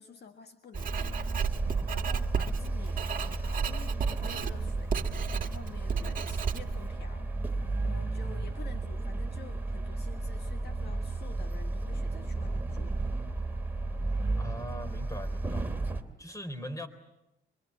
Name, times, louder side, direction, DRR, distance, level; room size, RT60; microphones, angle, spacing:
voice 1, 0.0-4.9 5.4-7.3 7.8-13.0, left 6 dB, 55° left, 6 dB, 1.7 m, -50 dB
sound 1, 0.7-16.0, right 2 dB, 10° right, 2.9 m, -33 dB
Writing, 0.7-6.9, right 7 dB, 45° right, 1.7 m, -33 dB
voice 2, 14.4-15.7 16.2-16.9, equal, 15° left, 9 dB, 3.9 m, -40 dB
25.0 x 24.5 x 8.6 m, 0.92 s
cardioid pair, 90°, 20 cm